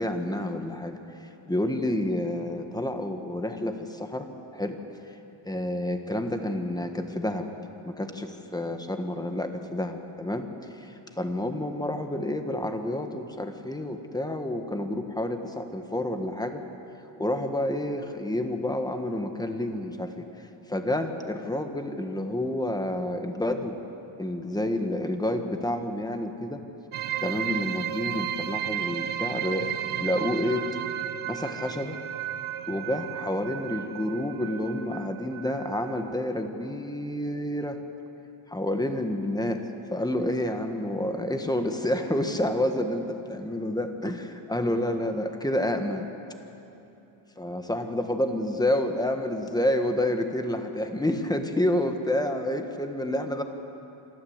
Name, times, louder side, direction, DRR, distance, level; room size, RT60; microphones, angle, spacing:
voice 1, 0.0-4.8 5.4-7.5 7.8-10.5 10.7-16.6 17.2-20.3 20.7-23.8 24.2-26.6 27.2-30.7 31.3-32.0 32.7-37.8 38.5-46.1 47.4-53.4, left 1 dB, 10° left, 6 dB, 1.3 m, -29 dB
sound 1, 26.9-36.2, right 10 dB, 85° right, 0.9 m, -34 dB
26.0 x 13.5 x 8.0 m, 3.0 s
wide cardioid pair, 150°, 49 cm